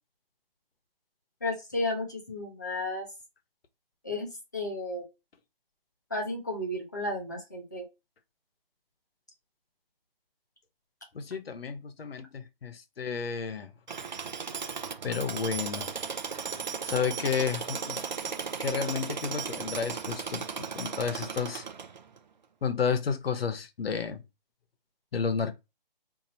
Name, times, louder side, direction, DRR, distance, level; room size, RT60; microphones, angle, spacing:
voice 1, 1.4-3.1 4.0-5.0 6.1-7.8, left 2 dB, 20° left, 0.6 m, -33 dB
voice 2, 11.1-13.7 15.0-15.9 16.8-18.0 18.4-21.7 22.6-24.2 25.1-25.5, left 6 dB, 85° left, 0.9 m, -31 dB
Tools, 13.9-22.2, right 6 dB, 50° right, 0.5 m, -36 dB
2.7 x 2.7 x 4.1 m
hypercardioid pair, 180°, 29 cm